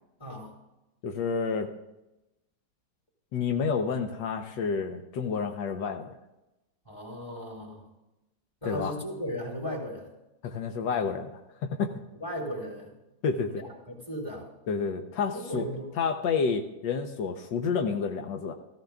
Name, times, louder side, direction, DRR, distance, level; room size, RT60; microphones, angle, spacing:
voice 1, 0.2-0.5 6.8-7.8 8.6-10.1 12.2-13.0 13.5-14.5 15.3-15.9, equal, 15° left, -2 dB, 3.2 m, -36 dB
voice 2, 1.0-1.7 3.3-6.1 8.6-8.9 10.4-11.9 13.2-13.5 14.7-15.6 16.0-18.5, left 5 dB, 80° left, 5 dB, 1.5 m, -29 dB
16.5 x 14.5 x 2.3 m, 0.96 s
omnidirectional pair, 1.9 m